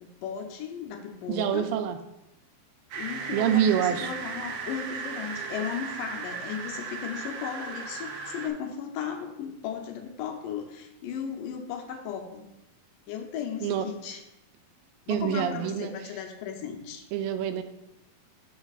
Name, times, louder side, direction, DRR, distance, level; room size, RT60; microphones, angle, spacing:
voice 1, 0.0-1.7 2.9-12.5 13.1-14.2 15.1-17.1, left 7 dB, 80° left, 5 dB, 2.2 m, -36 dB
voice 2, 1.3-2.0 3.3-4.1 13.6-13.9 15.1-15.9 17.1-17.6, right 9 dB, 90° right, 8 dB, 2.3 m, -26 dB
sound 1, 2.9-8.5, right 5 dB, 75° right, 2.2 m, -36 dB
13.0 x 4.8 x 2.4 m, 0.89 s
omnidirectional pair, 4.1 m